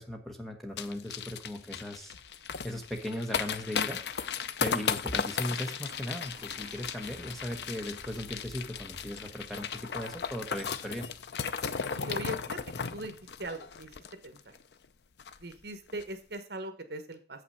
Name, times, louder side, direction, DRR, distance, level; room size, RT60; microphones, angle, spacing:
voice 1, 0.0-2.1 2.6-4.0 4.6-11.1, left 1 dB, ahead, 4 dB, 1.0 m, -38 dB
sound 1, 0.8-14.6 14.8-14.9 15.2-15.5 15.9-16.0, left 6 dB, 70° left, 0.5 m, -36 dB
sound 2, 6.2-11.5, right 1 dB, 35° right, 2.3 m, -55 dB
voice 2, 11.9-12.6 12.9-13.1 13.4-13.9 14.2-14.5 15.4-17.4, right 1 dB, 65° right, 9 dB, 1.2 m, -40 dB
7.6 x 5.8 x 5.5 m, 0.38 s
head